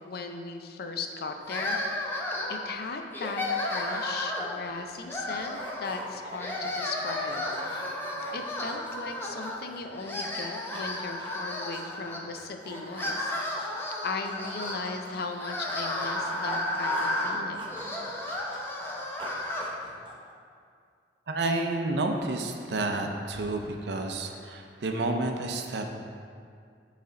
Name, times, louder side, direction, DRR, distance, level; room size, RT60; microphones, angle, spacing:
voice 1, 0.0-7.9 8.3-17.7, left 4 dB, 60° left, 5 dB, 0.5 m, -38 dB
sound 1, 1.5-2.7 3.1-4.6 5.1-6.0 6.3-9.6 9.9-12.2 12.7-19.7, left 1 dB, 15° left, 0.6 m, -33 dB
sound 2, 4.2-4.3 4.5-10.0 10.3-13.8 14.2-17.3 17.6-20.3, equal, 30° right, 0.7 m, -45 dB
voice 2, 21.3-25.8, right 2 dB, 70° right, 4 dB, 0.5 m, -30 dB
8.0 x 3.3 x 3.8 m, 2.2 s
head